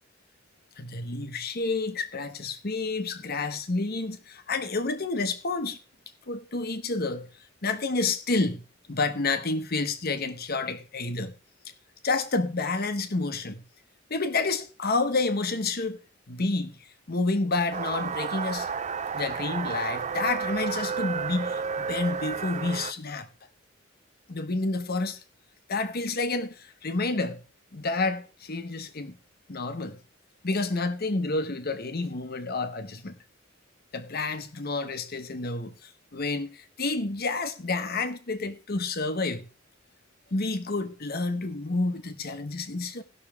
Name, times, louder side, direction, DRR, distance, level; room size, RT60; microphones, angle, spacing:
voice 1, 0.8-5.8 6.3-7.3 7.6-11.3 12.0-13.7 14.1-16.0 16.3-18.7 19.1-23.3 24.3-25.2 25.7-27.4 27.7-29.2 29.5-30.0 30.4-33.2 33.9-39.5 40.3-43.0, left 3 dB, 50° left, 1.1 m, -29 dB
sound 1, 17.7-22.9, right 6 dB, 35° right, 0.4 m, -31 dB
17.5 x 6.3 x 3.5 m
head